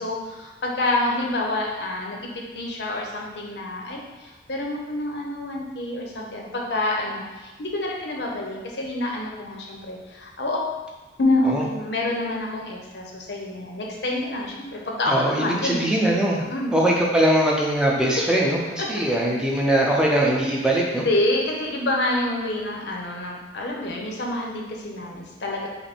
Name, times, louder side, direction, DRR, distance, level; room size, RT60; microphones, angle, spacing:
voice 1, 0.0-10.7 11.2-15.8 16.5-16.8 18.1-18.2 18.8-18.9 21.0-25.7, left 1 dB, 65° left, -1 dB, 0.8 m, -27 dB
voice 2, 15.1-16.4 16.7-21.0, right 1 dB, 5° right, -3 dB, 0.6 m, -21 dB
5.3 x 2.1 x 4.4 m, 1.2 s
head